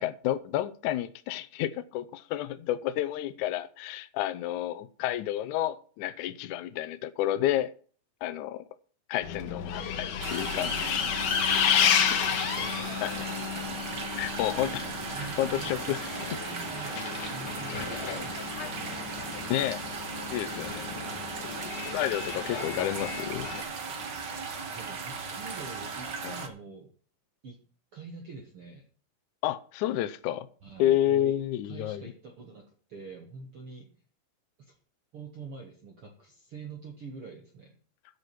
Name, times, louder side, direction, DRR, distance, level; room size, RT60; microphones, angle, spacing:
voice 1, 0.0-7.7 8.2-8.6 9.1-11.1 13.0-13.3 14.1-14.9 15.2-16.1 19.5-19.8 20.3-20.9 21.9-23.5 26.2-26.4 29.4-30.5 30.8-32.1, left 13 dB, 80° left, 1.8 m, -30 dB
Bus, 9.2-23.6, left 8 dB, 65° left, 2.7 m, -32 dB
sound 1, 10.2-26.5, right 5 dB, 85° right, 0.9 m, -37 dB
voice 2, 12.1-13.3 14.6-19.3 24.7-26.9 27.4-27.6 27.9-28.9 30.6-31.3 31.6-32.6 32.9-33.9 34.6-34.8 35.1-37.8, right 4 dB, 50° right, 1.7 m, -45 dB
11.5 x 8.1 x 6.0 m
omnidirectional pair, 4.5 m